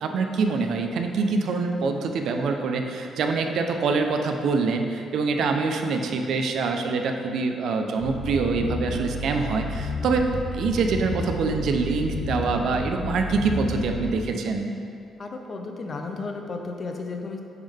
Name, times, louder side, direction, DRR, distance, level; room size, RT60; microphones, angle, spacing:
voice 1, 0.0-10.3 10.5-14.6, right 4 dB, 75° right, 4 dB, 0.5 m, -25 dB
sound 1, 8.0-14.1, left 2 dB, 75° left, 0.7 m, -32 dB
voice 2, 15.2-17.4, left 3 dB, 40° left, 3 dB, 0.7 m, -33 dB
10.5 x 3.7 x 3.5 m, 2.5 s
cardioid pair, 125°, 0 cm